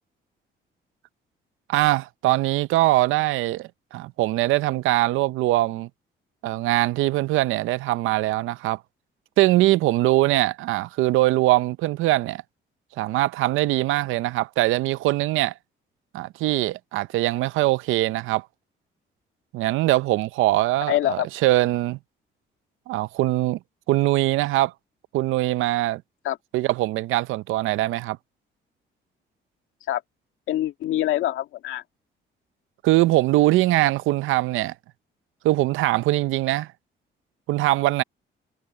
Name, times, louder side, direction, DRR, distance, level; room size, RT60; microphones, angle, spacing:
voice 1, 1.7-5.9 6.4-8.8 9.4-12.4 13.0-15.5 16.1-18.5 19.5-22.0 22.9-23.6 23.9-24.7 25.1-26.0 26.5-28.2 32.8-34.7 35.4-36.7 37.5-38.0, right 17 dB, 90° right, 0.6 m, -22 dB
voice 2, 20.9-21.3 26.2-26.4 29.9-30.0 30.5-31.8, left 13 dB, 85° left, 2.1 m, -24 dB
cardioid pair, 90°, 20 cm